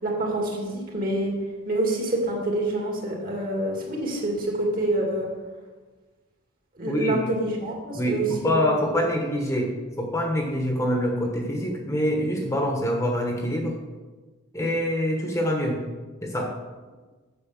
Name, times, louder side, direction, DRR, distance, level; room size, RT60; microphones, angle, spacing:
voice 1, 0.0-1.3 1.7-5.3 6.8-8.6 8.9-9.0, right 1 dB, 45° right, -1 dB, 2.5 m, -27 dB
voice 2, 6.9-7.2 7.9-13.8 14.5-15.8 16.2-16.5, equal, 15° left, 1 dB, 1.2 m, -25 dB
8.5 x 6.6 x 7.2 m, 1.3 s
head